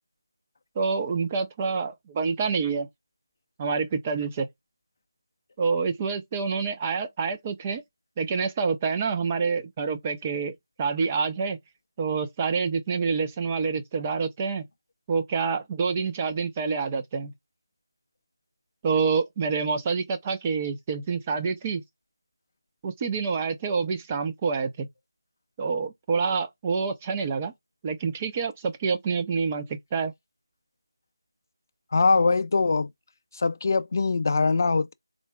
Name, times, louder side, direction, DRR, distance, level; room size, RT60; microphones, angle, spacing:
voice 1, 0.8-2.9 3.6-4.5 5.6-7.8 8.2-11.6 12.0-14.7 15.1-17.3 18.8-21.8 22.8-24.9 25.6-27.5 27.8-30.1, right 5 dB, 20° right, 0.4 m, -27 dB
voice 2, 31.9-32.9 33.3-34.9, left 4 dB, 45° left, 0.4 m, -22 dB
3.7 x 2.1 x 3.5 m
figure-of-eight pair, 165°, 2 cm